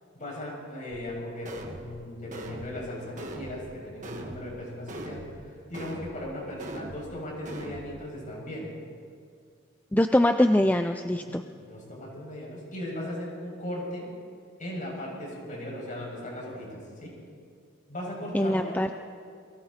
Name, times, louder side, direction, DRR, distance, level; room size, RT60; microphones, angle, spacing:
voice 1, 0.1-5.2 5.7-8.7 11.1-14.1 14.6-17.1 17.9-18.7, left 1 dB, 40° left, -3 dB, 7.0 m, -37 dB
sound 1, 0.9-1.0 1.4-1.9 2.3-2.7 3.2-3.6 4.0-4.4 4.9-5.3 5.7-6.2 6.6-7.0 7.4-7.9, right 1 dB, 35° right, 2.0 m, -40 dB
voice 2, 9.9-11.4 18.3-18.9, left 1 dB, 10° left, 7 dB, 0.4 m, -23 dB
28.5 x 23.0 x 4.4 m, 2.2 s
head